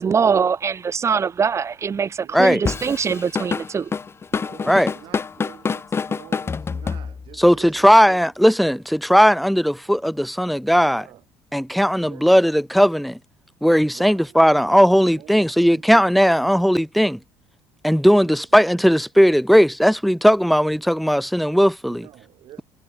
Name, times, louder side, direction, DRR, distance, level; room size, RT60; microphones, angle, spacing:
voice 1, 0.0-3.9, right 6 dB, 30° right, 1.2 m, -22 dB
voice 2, 2.2-3.0 4.3-8.2 10.8-11.2 12.0-12.3 13.9-14.8 15.1-15.8 18.2-18.5 21.8-22.6, right 14 dB, 65° right, 3.6 m, -46 dB
Drum kit / Drum, 2.6-7.5, left 5 dB, 30° left, 1.9 m, -26 dB
voice 3, 7.4-11.0 11.5-13.2 13.6-17.2 17.8-22.1, equal, ahead, 0.9 m, -17 dB
cardioid pair, 100°, 9 cm